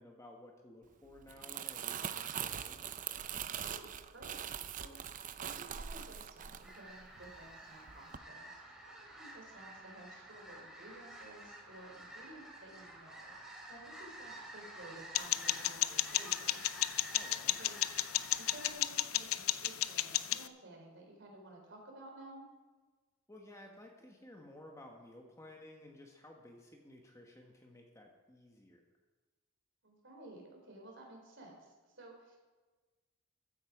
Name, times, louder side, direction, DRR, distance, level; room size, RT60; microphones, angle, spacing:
voice 1, 0.0-2.9 17.1-17.6 23.3-28.8, left 1 dB, 15° left, 1 dB, 1.3 m, -55 dB
Crumpling crinkling, 1.1-7.5 7.9-8.2, right 9 dB, 40° right, 0.5 m, -42 dB
voice 2, 3.5-4.5 4.8-5.1 5.4-16.7 17.6-17.8 18.4-22.5 29.8-32.4, right 1 dB, 60° right, 0 dB, 3.7 m, -54 dB
sound 1, 6.6-18.7, right 1 dB, ahead, 2.5 m, -51 dB
sound 2, 15.1-20.5, left 13 dB, 80° left, 0.5 m, -34 dB
15.0 x 9.9 x 4.9 m, 1.3 s
head